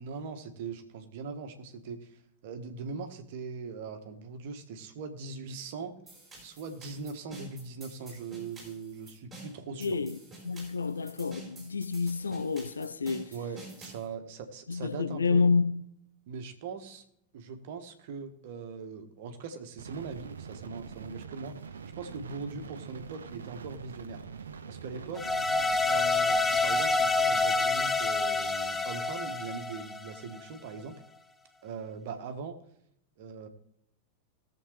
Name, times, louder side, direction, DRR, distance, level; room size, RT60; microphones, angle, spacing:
voice 1, 0.0-5.9 6.4-10.0 13.3-15.5 16.3-17.0 17.3-24.2 24.7-25.4 25.9-30.9 31.6-32.6 33.2-33.5, right 5 dB, 50° right, 1.3 m, -41 dB
sound 1, 6.1-14.0, right 2 dB, 10° right, 5.0 m, -50 dB
voice 2, 9.8-10.2 10.4-13.3 14.7-15.8, left 4 dB, 75° left, 0.6 m, -29 dB
sound 2, 19.8-29.0, right 6 dB, 70° right, 0.6 m, -45 dB
sound 3, 25.2-30.4, left 3 dB, 15° left, 0.4 m, -27 dB
19.5 x 7.2 x 3.2 m
figure-of-eight pair, 90°, 0 cm